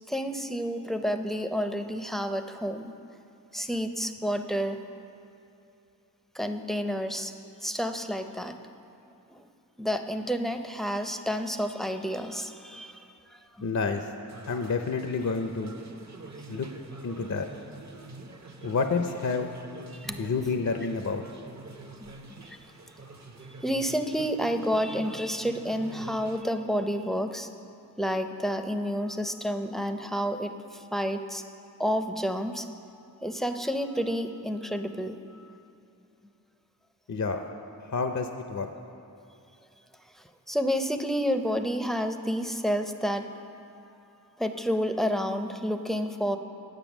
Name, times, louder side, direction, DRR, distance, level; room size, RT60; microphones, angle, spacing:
voice 1, 0.1-2.9 3.5-4.8 6.3-7.3 7.6-8.6 9.3-9.4 9.8-13.0 20.0-20.2 22.0-22.6 23.6-27.5 28.0-31.4 31.8-32.7 33.2-35.2 40.5-43.3 44.4-46.4, equal, ahead, 7 dB, 0.5 m, -30 dB
voice 2, 13.6-14.1 14.5-15.7 16.5-16.7 17.0-17.5 18.6-19.5 20.2-21.2 37.1-37.4 37.8-38.7, left 4 dB, 50° left, 6 dB, 0.5 m, -29 dB
sound 1, 14.3-26.4, right 3 dB, 45° right, 0.7 m, -46 dB
8.9 x 7.7 x 6.0 m, 2.7 s
wide cardioid pair, 45°, 38 cm